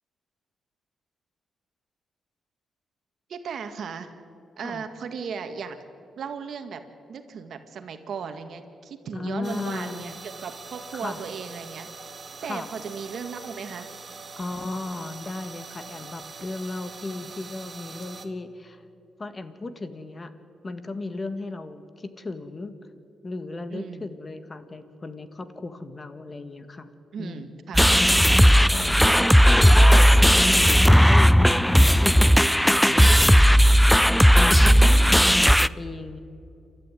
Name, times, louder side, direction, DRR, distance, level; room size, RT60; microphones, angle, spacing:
voice 1, 3.3-4.1 4.6-5.8 6.2-6.8 7.1-11.9 12.4-13.9 23.7-24.1 27.1-27.8 34.6-35.2, right 6 dB, 65° right, 8 dB, 2.0 m, -36 dB
voice 2, 9.1-10.1 10.9-11.2 12.4-12.7 14.4-18.8 19.2-20.3 20.6-22.7 23.2-26.9 27.2-27.5 27.9-28.1 28.7-29.0 29.4-30.1 30.4-33.6 34.3-36.2, left 2 dB, 30° left, 10 dB, 1.8 m, -35 dB
sound 1, 9.4-18.3, right 4 dB, 35° right, 2.0 m, -43 dB
sound 2, 27.7-35.7, equal, ahead, 0.5 m, -16 dB
28.5 x 13.0 x 9.2 m, 2.7 s
cardioid pair, 85°, 0 cm